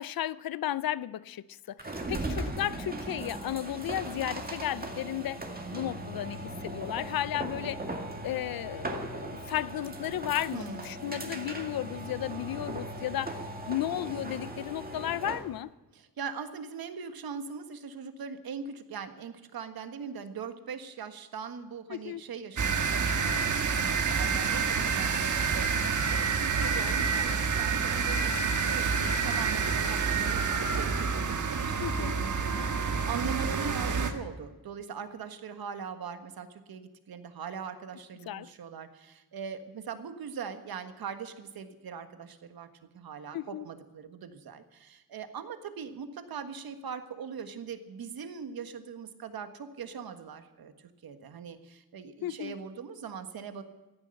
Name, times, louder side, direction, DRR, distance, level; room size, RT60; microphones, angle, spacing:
voice 1, 0.0-5.4 5.7-7.9 8.2-13.4 13.7-15.7 21.9-22.2 31.8-32.2 38.3-38.5 43.3-43.6 52.2-52.5, left 12 dB, 70° left, 0.7 m, -34 dB
sound 1, 1.8-15.5, right 1 dB, 25° right, 2.0 m, -38 dB
voice 2, 10.5-10.9 15.9-42.7 42.9-50.7 51.0-53.6, right 6 dB, 75° right, 1.6 m, -41 dB
sound 2, 22.6-34.1, right 5 dB, 55° right, 1.6 m, -28 dB
15.5 x 11.0 x 7.8 m
wide cardioid pair, 130°, 36 cm